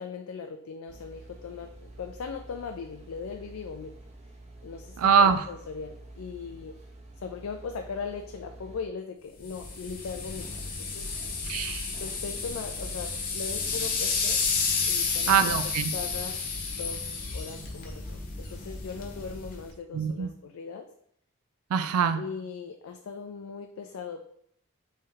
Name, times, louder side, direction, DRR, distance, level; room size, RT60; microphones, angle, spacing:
voice 1, 0.0-4.0 4.6-6.8 7.2-10.5 10.8-11.1 12.0-14.4 14.9-15.4 15.9-16.4 16.8-20.9 22.1-24.2, left 5 dB, 70° left, 5 dB, 0.4 m, -39 dB
sound 1, 0.9-8.8, right 2 dB, 30° right, 0.5 m, -48 dB
voice 2, 5.0-5.5 11.5-11.9 15.3-15.9 19.9-20.3 21.7-22.2, right 6 dB, 80° right, 10 dB, 0.4 m, -23 dB
sound 2, 9.4-19.7, left 4 dB, 40° left, 0.8 m, -31 dB
4.1 x 3.2 x 3.8 m, 0.70 s
head